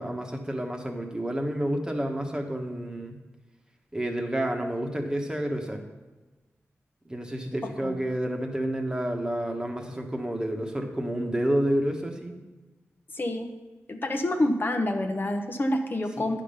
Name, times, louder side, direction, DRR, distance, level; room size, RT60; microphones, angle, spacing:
voice 1, 0.0-3.2 3.9-5.8 7.0-12.3 16.2-16.3, right 1 dB, 15° right, 3 dB, 1.3 m, -29 dB
voice 2, 13.1-13.5 13.9-16.4, left 1 dB, 45° left, 4 dB, 1.0 m, -27 dB
9.8 x 5.2 x 5.6 m, 1.2 s
wide cardioid pair, 75°, 5 cm